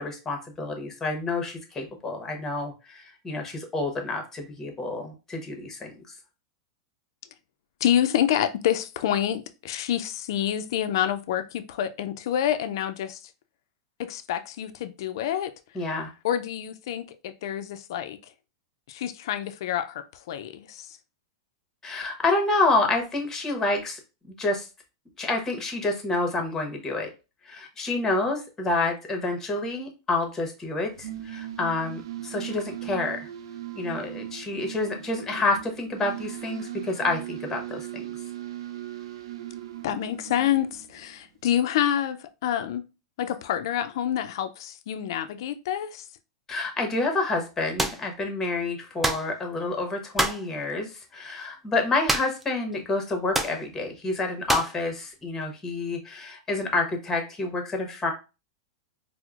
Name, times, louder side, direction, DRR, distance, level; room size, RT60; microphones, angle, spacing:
voice 1, 0.0-5.9 15.7-16.1 21.8-24.0 24.4-24.7 25.2-27.1 27.4-33.3 33.7-38.0 46.5-58.1, left 2 dB, 15° left, 0.9 m, -28 dB
voice 2, 7.8-13.3 14.0-15.5 16.2-18.2 18.9-21.0 39.8-42.8 43.2-46.0, left 10 dB, 70° left, 0.3 m, -27 dB
sound 1, 30.8-41.3, right 13 dB, 80° right, 0.4 m, -38 dB
sound 2, 47.8-48.0 49.0-49.3 50.2-50.5 52.1-52.5 52.7-52.8 53.3-53.6 54.5-54.8, right 1 dB, 5° right, 0.3 m, -26 dB
4.4 x 2.0 x 2.4 m
hypercardioid pair, 125°, 2 cm